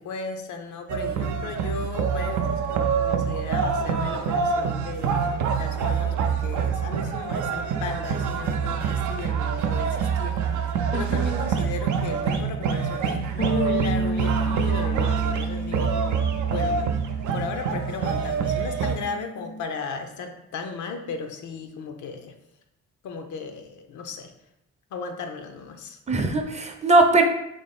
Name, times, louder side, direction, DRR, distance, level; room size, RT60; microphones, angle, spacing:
voice 1, 0.0-10.5 10.9-16.1 16.5-16.9 17.3-22.3 23.0-24.3 24.9-26.0, left 5 dB, 75° left, 5 dB, 0.7 m, -35 dB
sound 1, 0.9-18.9, right 6 dB, 75° right, 0.6 m, -26 dB
voice 2, 10.9-11.5 26.1-27.2, right 2 dB, 20° right, 4 dB, 0.6 m, -21 dB
sound 2, 13.4-17.9 18.2-19.6, equal, 30° left, 0.5 m, -32 dB
3.4 x 3.1 x 4.2 m, 0.85 s
cardioid pair, 90°, 30 cm